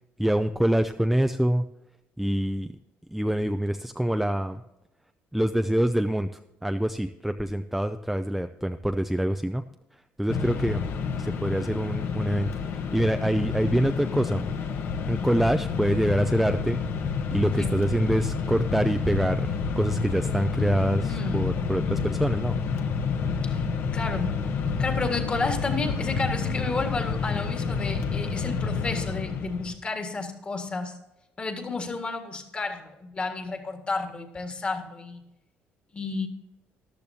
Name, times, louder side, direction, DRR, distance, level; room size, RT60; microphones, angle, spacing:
voice 1, 0.2-1.6 2.2-2.8 3.1-4.6 5.3-6.3 6.6-9.6 10.2-10.8 11.2-14.5 15.0-16.8 17.3-22.6, right 1 dB, ahead, 7 dB, 0.4 m, -25 dB
Mechanisms, 10.3-29.7, left 5 dB, 55° left, 1.2 m, -29 dB
voice 2, 21.0-21.5 23.4-23.6 23.9-24.4 24.8-31.0 31.4-35.2 35.9-36.3, left 3 dB, 25° left, 5 dB, 1.7 m, -31 dB
14.0 x 12.0 x 2.8 m, 0.93 s
cardioid pair, 140°, 4 cm